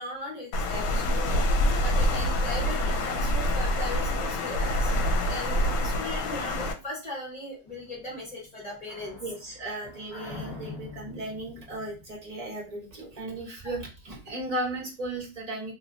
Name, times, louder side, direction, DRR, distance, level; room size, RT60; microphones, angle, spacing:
voice 1, 0.0-1.5 1.8-9.2 13.6-13.7, left 1 dB, 25° left, -3 dB, 1.1 m, -38 dB
Water, 0.5-6.7, left 1 dB, 80° left, 1.2 m, -26 dB
sound 1, 7.7-13.1, left 4 dB, 40° left, 0.3 m, -45 dB
voice 2, 9.2-15.7, right 1 dB, 25° right, -3 dB, 1.1 m, -36 dB
3.0 x 2.9 x 2.7 m, 0.30 s
omnidirectional pair, 1.9 m